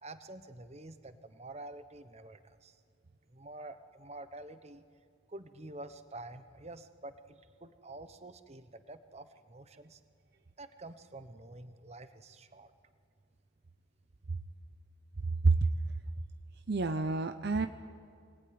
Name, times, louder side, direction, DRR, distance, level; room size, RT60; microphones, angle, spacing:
voice 1, 0.0-2.8 3.3-4.8 5.3-10.0 10.6-12.7, right 2 dB, 30° right, 11 dB, 1.0 m, -48 dB
voice 2, 16.7-17.7, right 3 dB, 50° right, 9 dB, 0.7 m, -27 dB
24.5 x 19.5 x 9.6 m, 2.3 s
head